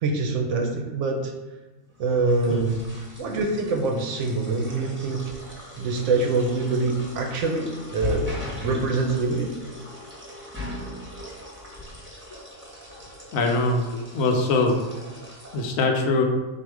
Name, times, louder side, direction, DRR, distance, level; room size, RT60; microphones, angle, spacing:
voice 1, 0.0-1.3 2.0-5.2 5.8-8.3 8.6-9.5, right 3 dB, 65° right, 3 dB, 0.8 m, -25 dB
sound 1, 2.0-15.6, left 2 dB, 10° right, 0.9 m, -39 dB
voice 2, 8.6-9.1 13.3-13.8 14.1-14.8 15.5-16.2, left 3 dB, 75° left, 3 dB, 1.0 m, -23 dB
4.1 x 2.5 x 4.7 m, 1.1 s
omnidirectional pair, 1.5 m